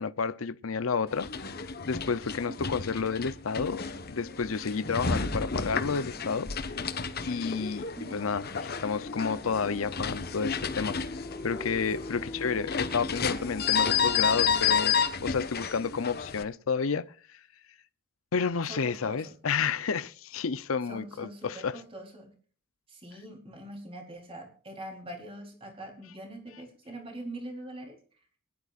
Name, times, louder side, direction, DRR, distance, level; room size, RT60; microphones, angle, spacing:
voice 1, 0.0-6.5 7.3-11.0 11.4-17.4 18.3-21.8, left 5 dB, 75° left, 0.6 m, -31 dB
sound 1, 1.1-16.4, left 6 dB, 45° left, 1.2 m, -31 dB
sound 2, 1.5-14.9, left 1 dB, 15° left, 0.8 m, -45 dB
voice 2, 12.2-12.6 18.7-19.4 20.9-22.3 22.9-28.0, right 1 dB, 25° right, 3.8 m, -43 dB
23.5 x 11.0 x 2.5 m
head